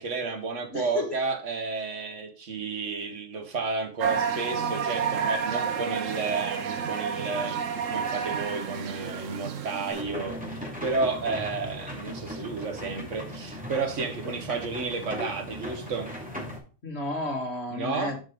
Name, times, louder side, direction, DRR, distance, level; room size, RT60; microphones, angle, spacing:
voice 1, 0.0-16.1 17.7-18.1, right 4 dB, 70° right, 1.7 m, -32 dB
voice 2, 0.7-1.2 3.0-3.1 16.8-18.2, left 2 dB, 55° left, 2.2 m, -32 dB
sound 1, 4.0-10.0, right 6 dB, 85° right, 1.3 m, -30 dB
sound 2, 9.9-16.6, left 1 dB, 5° right, 2.6 m, -38 dB
7.3 x 5.2 x 5.1 m
omnidirectional pair, 1.3 m